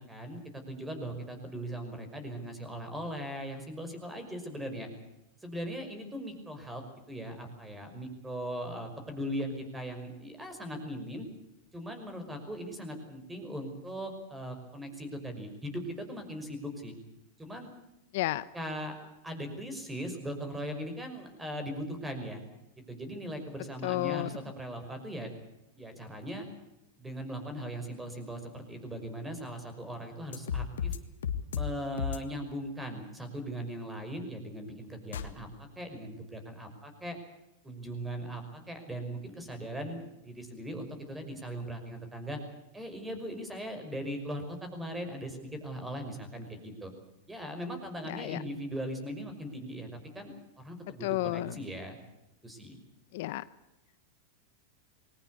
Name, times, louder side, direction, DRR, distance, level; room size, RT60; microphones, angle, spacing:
voice 1, 0.1-4.9 5.4-6.8 7.1-11.3 11.7-16.9 17.4-17.7 18.5-19.0 19.2-22.4 22.9-25.3 25.8-26.5 27.0-30.9 31.5-37.2 37.6-42.4 42.7-46.9 47.3-49.9 50.1-52.0 52.4-52.8, equal, 10° right, 7 dB, 5.7 m, -39 dB
voice 2, 18.1-18.4 23.8-24.3 48.1-48.4 51.0-51.6 53.1-53.4, left 18 dB, 65° left, 16 dB, 0.8 m, -32 dB
sound 1, 30.3-31.0 31.2-31.7 32.0-32.2 35.1-35.3, left 8 dB, 85° left, 1.7 m, -32 dB
21.5 x 18.5 x 8.5 m, 0.92 s
hypercardioid pair, 120°, 0 cm